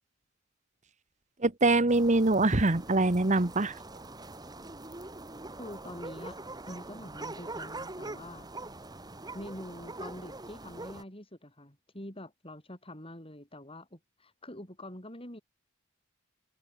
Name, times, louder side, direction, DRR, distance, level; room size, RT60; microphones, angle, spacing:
voice 1, 1.4-3.7, right 2 dB, 35° right, 1.2 m, -24 dB
sound 1, 1.9-11.0, right 2 dB, 20° right, 2.4 m, -43 dB
voice 2, 5.6-6.4 6.7-8.5 9.3-15.4, left 1 dB, 25° left, 7.4 m, -45 dB
head